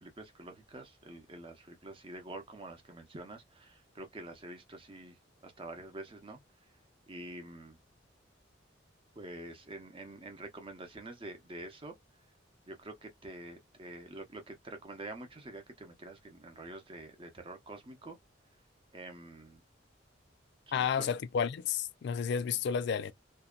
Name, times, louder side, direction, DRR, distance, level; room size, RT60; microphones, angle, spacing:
voice 1, 0.0-6.4 7.1-7.8 9.2-11.9 12.7-18.2 18.9-19.6 20.7-21.1, right 2 dB, 30° right, 0.7 m, -47 dB
voice 2, 20.7-23.1, left 7 dB, 65° left, 0.3 m, -31 dB
2.7 x 2.2 x 2.3 m
head